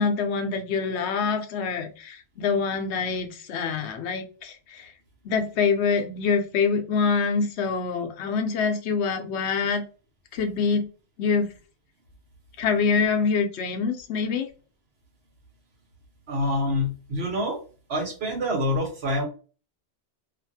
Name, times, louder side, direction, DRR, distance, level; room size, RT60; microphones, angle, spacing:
voice 1, 0.0-4.9 5.2-9.8 10.3-10.9 11.2-11.5 12.6-14.5, left 5 dB, 80° left, 5 dB, 0.9 m, -25 dB
voice 2, 16.3-17.6 17.9-19.2, left 1 dB, 75° right, -1 dB, 1.3 m, -26 dB
2.8 x 2.4 x 2.6 m, 0.36 s
omnidirectional pair, 1.1 m